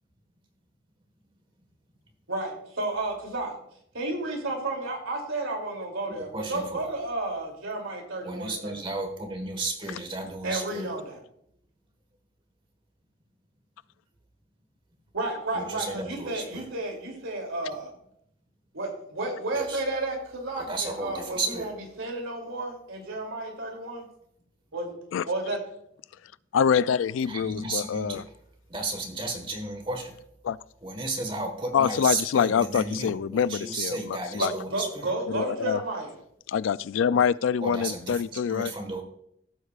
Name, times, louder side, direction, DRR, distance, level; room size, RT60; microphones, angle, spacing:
voice 1, 2.3-3.6 3.9-8.9 10.4-11.2 15.1-17.9 18.7-24.1 24.7-24.9 25.2-25.6 34.4-36.1, right 2 dB, 85° right, 2 dB, 2.9 m, -32 dB
voice 2, 6.2-6.8 8.2-10.9 15.5-16.7 19.5-19.8 20.5-21.7 27.3-28.2 28.7-30.2 30.8-35.1 37.6-39.0, right 2 dB, 25° right, 5 dB, 1.5 m, -33 dB
voice 3, 26.5-28.2 30.4-30.6 31.7-34.5 35.3-35.8 36.5-38.7, left 7 dB, 80° left, 19 dB, 0.3 m, -25 dB
16.5 x 8.0 x 2.4 m, 0.71 s
head